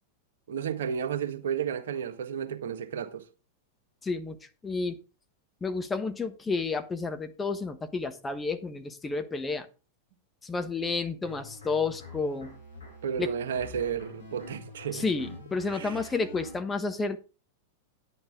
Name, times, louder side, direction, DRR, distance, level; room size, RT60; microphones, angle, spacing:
voice 1, 0.5-3.2 13.0-15.0 15.7-16.0, right 8 dB, 70° right, 1.6 m, -32 dB
voice 2, 4.0-4.4 4.6-5.0 5.6-9.7 10.4-12.6 13.2-13.3 14.9-17.2, left 4 dB, 15° left, 1.2 m, -31 dB
sound 1, 11.2-16.6, left 3 dB, 85° left, 5.4 m, -46 dB
10.5 x 8.9 x 3.7 m
hypercardioid pair, 100°, 0 cm